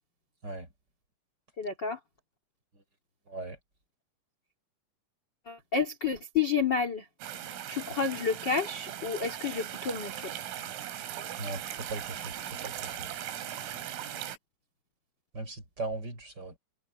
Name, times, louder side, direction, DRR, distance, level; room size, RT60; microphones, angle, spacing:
voice 1, 1.6-2.0 5.4-7.1 7.7-10.3, left 5 dB, 40° left, 1.5 m, -30 dB
sound 1, 7.2-14.4, right 11 dB, 80° right, 4.9 m, -39 dB
voice 2, 11.9-13.1 15.3-16.6, right 2 dB, 20° right, 5.4 m, -38 dB
omnidirectional pair, 6.0 m